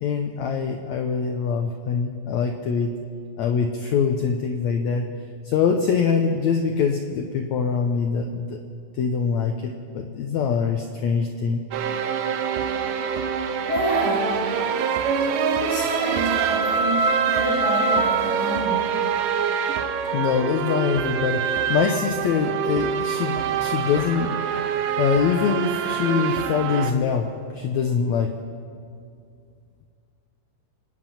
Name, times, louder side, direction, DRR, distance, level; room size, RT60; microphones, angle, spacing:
voice 1, 0.0-2.9 3.4-5.1 5.4-8.6 9.0-11.6 20.1-24.3 25.0-27.3 27.5-28.3, left 6 dB, 85° left, 5 dB, 1.6 m, -24 dB
sound 1, 11.7-26.9, right 6 dB, 75° right, 2.4 m, -25 dB
voice 2, 13.7-14.3 14.6-14.7 15.6-17.0 17.3-18.8, right 1 dB, 60° left, -6 dB, 6.2 m, -27 dB
25.5 x 9.7 x 5.7 m, 2.3 s
omnidirectional pair, 4.2 m